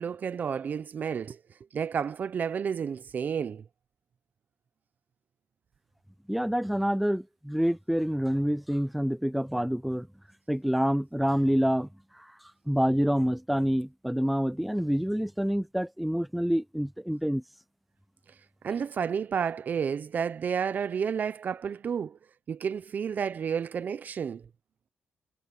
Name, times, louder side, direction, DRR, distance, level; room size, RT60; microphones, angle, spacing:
voice 1, 0.0-1.4 1.7-3.6 18.6-22.2 22.5-24.4, right 7 dB, 45° right, 0.6 m, -31 dB
voice 2, 6.3-10.1 10.5-11.9 12.1-12.3 12.7-17.4, equal, ahead, 0.7 m, -27 dB
cardioid pair, 135°, 4 cm